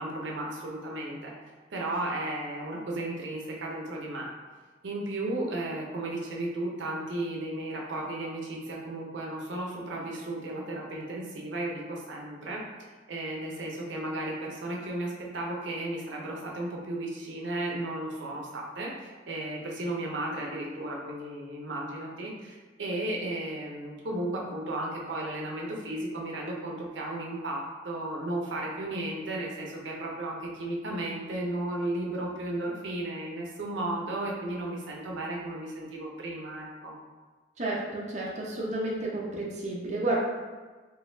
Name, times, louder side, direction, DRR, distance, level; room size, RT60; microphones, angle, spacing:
voice 1, 0.0-1.3 1.7-4.3 4.8-12.6 13.1-37.0, right 1 dB, 80° right, -2 dB, 0.6 m, -34 dB
voice 2, 37.6-40.2, right 2 dB, 40° right, -4 dB, 0.6 m, -31 dB
3.8 x 2.9 x 2.6 m, 1.3 s
head